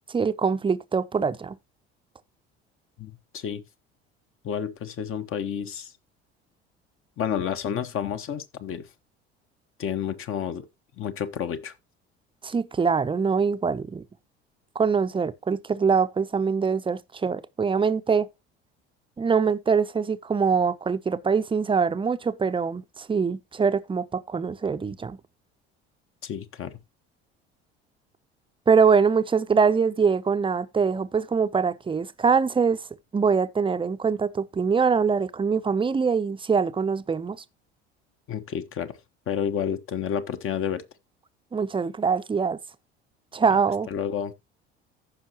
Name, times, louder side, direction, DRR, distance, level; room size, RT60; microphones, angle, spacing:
voice 1, 0.1-1.6 12.4-14.0 14.8-18.3 19.2-25.2 28.7-32.8 33.1-37.4 41.5-42.6 43.3-43.9, right 5 dB, 15° right, 0.7 m, -23 dB
voice 2, 3.0-3.6 4.4-5.9 7.2-8.9 9.8-10.7 11.0-11.7 26.2-26.7 38.3-38.9 39.3-40.8 43.9-44.3, left 8 dB, 40° left, 1.2 m, -30 dB
14.5 x 5.7 x 2.9 m
figure-of-eight pair, 60°, 32 cm